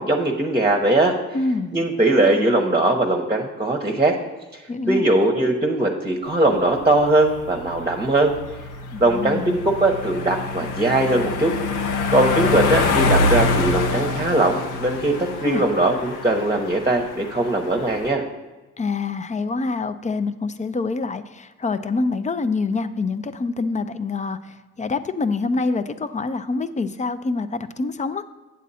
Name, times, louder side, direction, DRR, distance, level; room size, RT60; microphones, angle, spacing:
voice 1, 0.0-1.1 1.7-4.1 4.5-4.6 4.9-8.4 9.0-11.6 12.1-18.2, right 2 dB, 15° right, 2 dB, 0.9 m, -20 dB
voice 2, 1.3-1.8 4.7-5.1 8.9-9.6 15.4-15.7 18.8-28.2, left 3 dB, 25° left, 12 dB, 0.5 m, -26 dB
sound 1, 6.4-18.1, left 3 dB, 85° left, 0.8 m, -26 dB
8.4 x 7.4 x 4.2 m, 1.2 s
cardioid pair, 90°, 30 cm